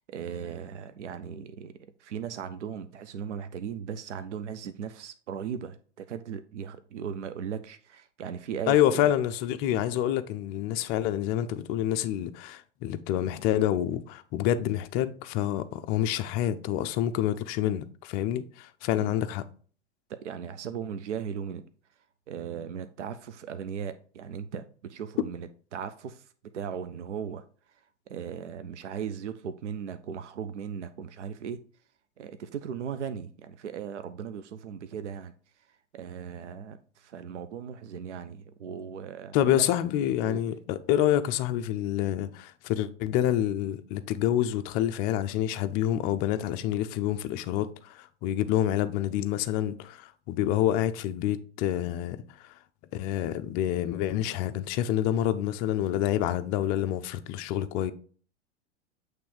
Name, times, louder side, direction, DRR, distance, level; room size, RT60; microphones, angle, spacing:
voice 1, 0.1-9.1 18.9-19.2 20.1-21.7 22.3-26.2 26.5-27.4 28.1-31.6 32.2-35.3 35.9-39.7 40.2-40.4, right 7 dB, 70° right, 0.6 m, -37 dB
voice 2, 8.7-19.4 39.3-52.5 52.9-57.9, left 11 dB, 25° left, 0.4 m, -27 dB
8.4 x 3.2 x 4.5 m
figure-of-eight pair, 95°, 37 cm